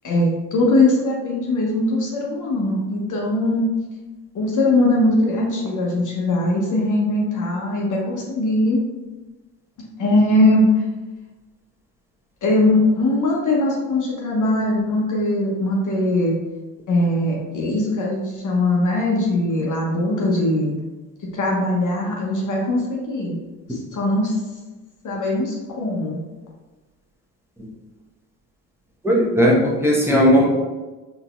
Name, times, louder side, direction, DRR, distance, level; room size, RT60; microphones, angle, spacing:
voice 1, 0.0-3.7 4.3-8.8 10.0-10.8 12.4-16.3 16.9-20.7 21.3-23.4 23.7-24.4 25.0-26.2, left 1 dB, 40° left, -2 dB, 0.8 m, -20 dB
voice 2, 29.0-30.5, equal, 5° right, -4 dB, 0.9 m, -16 dB
4.0 x 2.7 x 2.4 m, 1.2 s
hypercardioid pair, 50°, 50 cm